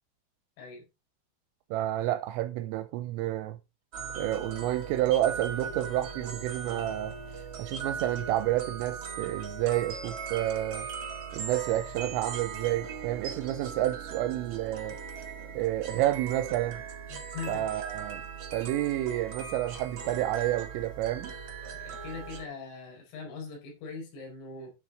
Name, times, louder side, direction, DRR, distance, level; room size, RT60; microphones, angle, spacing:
voice 1, 1.7-3.6 4.2-7.2 7.6-10.9 11.3-15.0 15.6-16.8 17.5-18.2 18.5-21.3, right 14 dB, 85° right, 3.4 m, -30 dB
sound 1, 3.9-22.4, right 5 dB, 60° right, 1.5 m, -39 dB
voice 2, 17.1-17.7 21.8-24.7, left 4 dB, 80° left, 7.2 m, -41 dB
11.5 x 7.8 x 3.7 m
omnidirectional pair, 5.8 m